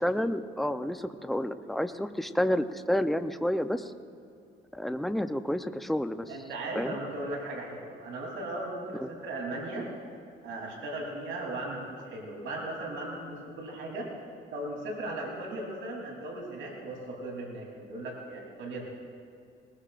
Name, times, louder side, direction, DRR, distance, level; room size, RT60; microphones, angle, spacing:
voice 1, 0.0-3.9 4.7-6.3 6.7-6.9 9.0-9.1, equal, ahead, 9 dB, 0.6 m, -30 dB
voice 2, 6.3-9.9 10.4-14.1 14.5-18.9, right 2 dB, 80° right, -2 dB, 3.4 m, -37 dB
20.5 x 20.0 x 2.5 m, 2.4 s
cardioid pair, 90°, 20 cm